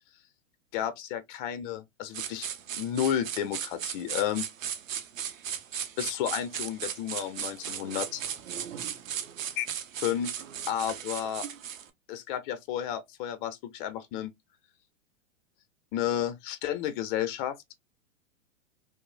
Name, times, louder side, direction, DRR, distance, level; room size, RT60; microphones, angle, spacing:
voice 1, 0.7-2.5 2.7-4.5 6.0-8.2 9.6-9.7 10.0-11.5 12.1-14.3 15.9-17.6, left 10 dB, 40° left, 0.5 m, -32 dB
sound 1, 2.1-11.9, right 9 dB, 85° right, 0.7 m, -37 dB
3.0 x 2.0 x 2.2 m
hypercardioid pair, 120°, 38 cm